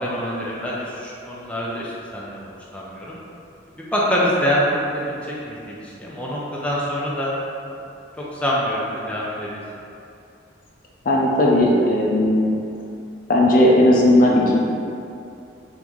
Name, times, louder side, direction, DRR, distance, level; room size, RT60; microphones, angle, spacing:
voice 1, 0.0-2.4 2.7-3.2 3.9-7.3 8.3-9.6, equal, 5° left, -6 dB, 0.5 m, -25 dB
voice 2, 11.1-12.6 13.3-14.6, left 1 dB, 50° left, -3 dB, 0.5 m, -16 dB
3.9 x 3.5 x 3.0 m, 2.6 s
head